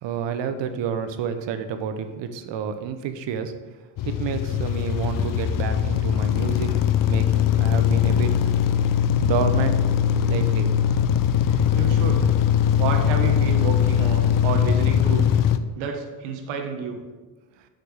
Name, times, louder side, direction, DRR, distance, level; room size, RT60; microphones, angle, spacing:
voice 1, 0.0-3.5 4.0-6.8 7.1-8.4 9.2-9.8 10.1-10.7, right 7 dB, 60° right, 9 dB, 1.0 m, -29 dB
sound 1, 4.0-15.6, left 9 dB, 45° left, 0.6 m, -21 dB
voice 2, 11.4-12.3 12.8-15.3 15.7-17.0, right 6 dB, 75° right, 3 dB, 1.4 m, -30 dB
6.5 x 6.0 x 6.5 m, 1.3 s
supercardioid pair, 95°, 49 cm